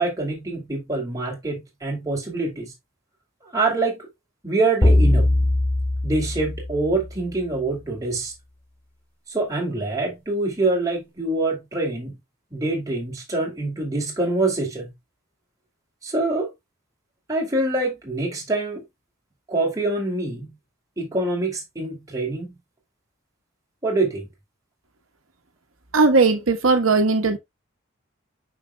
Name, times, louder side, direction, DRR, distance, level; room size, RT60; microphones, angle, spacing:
voice 1, 0.0-2.7 3.4-4.1 4.4-5.3 6.0-8.3 9.3-12.2 12.5-14.9 16.0-16.5 17.3-18.8 19.5-20.5 21.0-22.6 23.8-24.3, right 2 dB, 15° right, 2.6 m, -25 dB
sound 1, 4.8-7.3, left 1 dB, 10° left, 2.1 m, -20 dB
voice 2, 25.9-27.4, right 3 dB, 85° right, 1.2 m, -18 dB
7.1 x 5.9 x 2.3 m
head